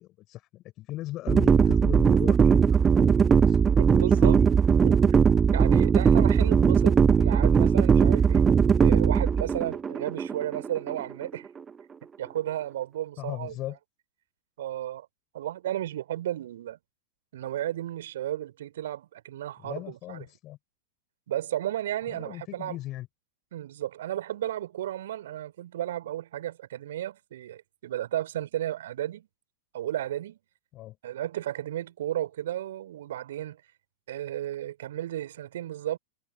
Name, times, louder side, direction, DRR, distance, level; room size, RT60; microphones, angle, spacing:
voice 1, 0.0-3.8 4.2-4.5 13.2-13.8 19.6-20.6 22.1-23.1 30.7-31.0, left 16 dB, 35° left, 6.7 m, -38 dB
sound 1, 1.3-11.3, right 6 dB, 20° right, 0.5 m, -20 dB
voice 2, 3.9-4.4 4.8-5.0 5.5-8.5 8.8-11.5 12.2-13.5 14.6-15.1 15.3-16.8 17.3-20.2 21.3-22.8 23.5-29.3 29.7-30.4 31.0-33.6 34.1-36.0, right 12 dB, 60° right, 4.4 m, -33 dB
figure-of-eight pair, 90°, 0 cm